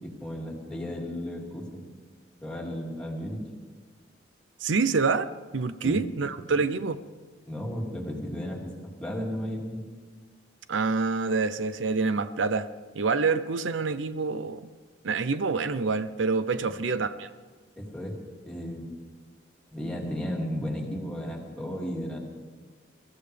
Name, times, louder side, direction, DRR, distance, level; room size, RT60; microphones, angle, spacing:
voice 1, 0.0-1.9 2.4-3.4 5.8-6.0 6.5-6.6 7.4-9.8 17.8-18.2 18.4-19.0 19.7-22.2, equal, 5° left, -3 dB, 2.5 m, -34 dB
voice 2, 4.6-7.0 10.7-12.7 12.9-14.6 15.0-17.3, right 4 dB, 85° right, 13 dB, 0.6 m, -27 dB
22.5 x 14.5 x 3.4 m, 1.4 s
head